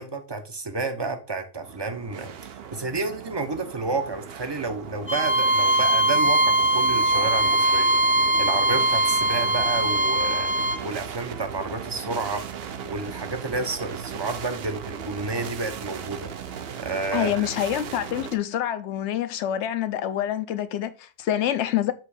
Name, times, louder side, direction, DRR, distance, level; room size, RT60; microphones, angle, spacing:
voice 1, 0.0-2.3 2.7-10.5 10.8-12.5 12.8-16.3 16.8-17.5, right 3 dB, 25° right, 0.6 m, -30 dB
sound 1, 1.6-18.4, right 7 dB, 55° right, 0.8 m, -37 dB
Bowed string instrument, 5.1-10.8, right 1 dB, 10° left, 0.8 m, -21 dB
voice 2, 17.1-21.9, left 11 dB, 65° left, 0.8 m, -26 dB
7.5 x 3.1 x 4.8 m
omnidirectional pair, 1.4 m